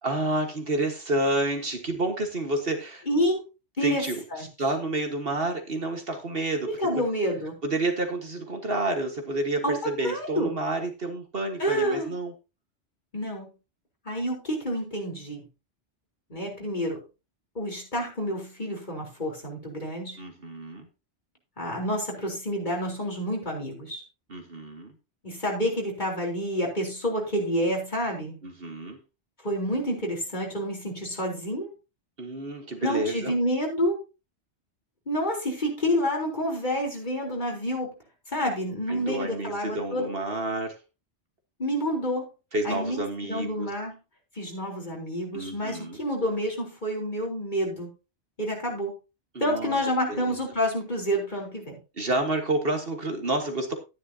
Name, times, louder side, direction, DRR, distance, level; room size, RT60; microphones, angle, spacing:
voice 1, 0.0-3.0 3.8-7.1 7.6-12.3 20.2-20.9 24.3-24.9 28.4-29.0 32.2-33.4 38.9-40.7 42.5-43.7 45.3-46.0 49.3-49.8 50.1-50.4 52.0-53.8, right 2 dB, 55° right, 5 dB, 1.8 m, -29 dB
voice 2, 3.1-3.4 3.8-4.0 4.3-4.5 6.7-7.5 9.6-10.5 11.6-12.2 13.1-13.5 14.0-15.4 16.3-17.0 17.6-20.2 21.6-24.0 25.2-28.4 29.4-31.7 32.8-33.9 35.1-37.9 38.3-40.1 41.6-42.3 42.6-44.0 44.4-47.9 48.4-48.9 49.4-51.8, equal, 40° left, -1 dB, 4.1 m, -28 dB
13.0 x 10.0 x 2.8 m, 0.28 s
omnidirectional pair, 1.2 m